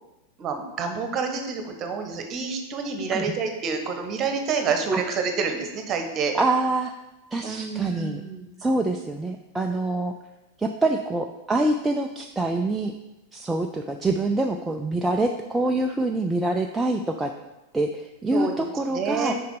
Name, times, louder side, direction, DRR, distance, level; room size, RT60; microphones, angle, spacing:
voice 1, 0.4-6.4 7.4-8.5 18.3-18.5 18.9-19.3, right 5 dB, 30° right, 5 dB, 1.2 m, -28 dB
voice 2, 6.3-6.9 7.3-8.2 8.6-10.1 10.6-12.9 13.3-17.3 17.7-19.3, right 2 dB, 10° right, 3 dB, 0.4 m, -25 dB
6.5 x 5.3 x 5.3 m, 0.99 s
figure-of-eight pair, 90°, 0 cm